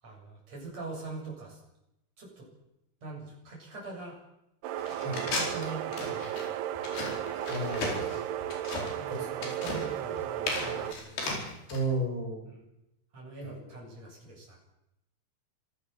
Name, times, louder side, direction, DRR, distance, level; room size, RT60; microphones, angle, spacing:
voice 1, 0.0-1.6 2.2-2.5 3.0-4.2 5.2-6.6 9.0-11.3 12.5-12.6 13.1-14.6, right 3 dB, 40° right, -2 dB, 9.0 m, -43 dB
sound 1, 4.6-10.9, right 11 dB, 85° right, 3.0 m, -35 dB
sound 2, 4.8-11.8, left 3 dB, 80° left, 6.8 m, -36 dB
voice 2, 7.5-8.1 9.1-9.5 11.7-12.5 13.4-13.8, right 1 dB, 30° left, 0 dB, 7.6 m, -34 dB
25.5 x 17.5 x 7.1 m, 0.89 s
omnidirectional pair, 4.6 m